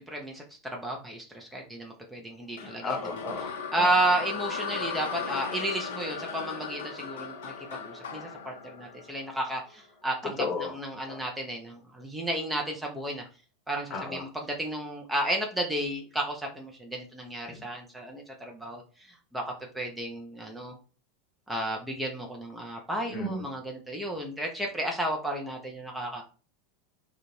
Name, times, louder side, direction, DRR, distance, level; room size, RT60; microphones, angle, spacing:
voice 1, 0.0-3.0 3.7-13.2 13.7-19.4 19.7-20.8 21.5-26.2, right 1 dB, 10° right, 1 dB, 0.6 m, -32 dB
sound 1, 2.6-9.7, left 5 dB, 65° left, 0.6 m, -37 dB
voice 2, 2.8-3.5 3.8-3.9 10.4-10.7 11.1-11.2 13.9-14.2 17.5-17.6 23.1-23.4, left 3 dB, 30° left, 2 dB, 0.9 m, -33 dB
2.4 x 2.3 x 3.2 m, 0.36 s
figure-of-eight pair, 85°, 0 cm